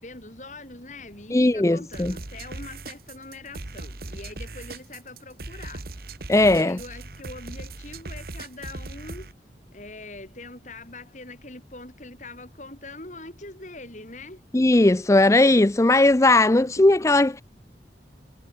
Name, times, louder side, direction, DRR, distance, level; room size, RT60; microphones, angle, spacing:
voice 1, 0.0-5.8 6.4-9.3 9.7-14.4 16.6-16.9, left 2 dB, 45° left, 6.2 m, -42 dB
voice 2, 1.3-2.1 6.3-6.8 14.5-17.4, left 2 dB, 15° left, 0.5 m, -18 dB
sound 1, 1.9-9.3, right 2 dB, 55° right, 1.6 m, -38 dB
head